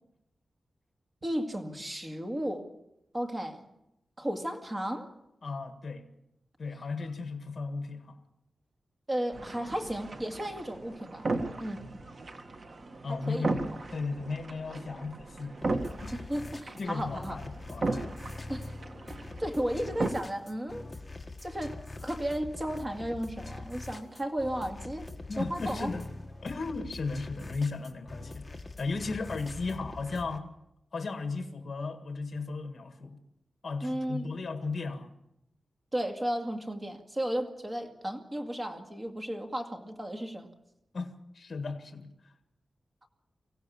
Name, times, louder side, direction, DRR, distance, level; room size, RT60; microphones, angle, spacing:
voice 1, 1.2-2.7 3.1-3.7 4.2-5.1 9.1-11.3 11.6-11.8 13.1-13.5 16.1-17.4 18.5-18.7 19.2-20.8 21.4-25.1 25.4-25.9 33.8-34.3 35.9-40.5, equal, 20° right, 2.2 m, -34 dB
voice 2, 5.4-6.1 6.6-8.2 13.0-15.6 16.0-16.1 16.8-18.1 25.3-26.1 26.4-28.5 28.8-30.5 30.9-33.2 33.6-35.1 40.9-42.1, left 4 dB, 50° left, 1.8 m, -35 dB
sound 1, 9.3-20.1, right 3 dB, 50° right, 1.6 m, -37 dB
sound 2, 15.6-30.4, left 2 dB, 15° left, 1.7 m, -44 dB
24.5 x 16.5 x 7.1 m
wide cardioid pair, 125°, 0 cm